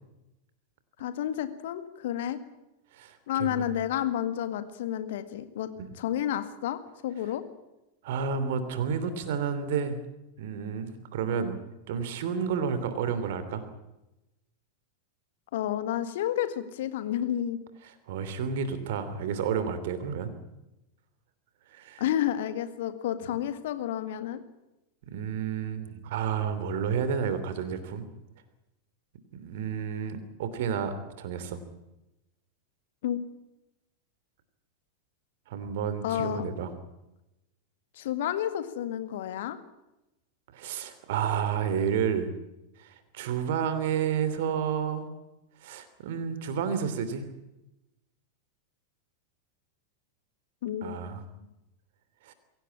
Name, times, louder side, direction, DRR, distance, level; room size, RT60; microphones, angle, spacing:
voice 1, 1.0-2.4 3.3-7.4 15.5-17.6 22.0-24.4 33.0-33.3 36.0-36.4 38.0-39.6 50.6-51.1, left 11 dB, 55° left, 11 dB, 1.9 m, -30 dB
voice 2, 2.9-3.6 5.8-5.9 8.0-10.0 10.4-11.6 11.9-13.7 18.1-20.3 21.7-22.0 25.1-28.1 29.3-31.6 35.5-36.7 40.5-42.3 42.8-45.1 45.6-47.3 50.8-51.2 52.2-52.3, right 7 dB, 55° right, 12 dB, 3.0 m, -30 dB
23.0 x 17.0 x 8.7 m, 0.95 s
figure-of-eight pair, 90°, 0 cm